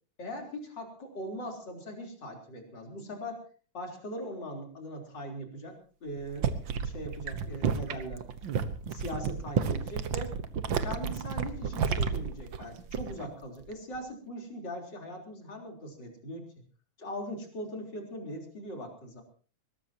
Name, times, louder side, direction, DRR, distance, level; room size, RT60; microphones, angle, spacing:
voice 1, 0.2-3.4 3.7-6.5 6.8-8.2 8.9-10.3 10.8-16.5 17.0-19.2, equal, 35° left, 2 dB, 4.3 m, -40 dB
sound 1, 6.2-13.3 13.6-14.0, right 6 dB, 60° right, 1.3 m, -32 dB
21.0 x 19.5 x 2.9 m, 0.39 s
omnidirectional pair, 3.6 m